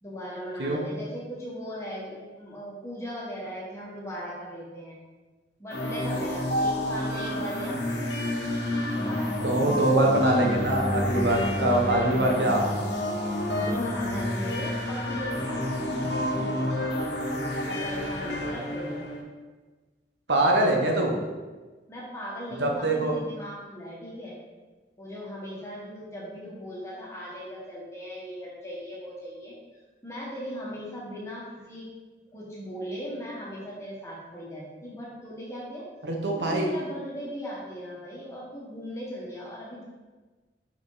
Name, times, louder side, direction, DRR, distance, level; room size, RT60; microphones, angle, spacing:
voice 1, 0.0-5.0 5.6-8.0 8.9-9.9 11.5-12.8 13.4-16.7 17.6-19.0 21.9-24.4 25.0-29.5 30.0-31.9 32.3-35.8 36.4-39.8, equal, 15° left, -6 dB, 1.4 m, -38 dB
voice 2, 0.6-0.9 9.4-12.7 20.3-21.1 22.6-23.2 36.1-36.7, right 1 dB, 80° right, 0 dB, 1.2 m, -23 dB
sound 1, 5.7-19.2, left 1 dB, 75° left, 1.2 m, -29 dB
5.9 x 5.0 x 4.0 m, 1.3 s
head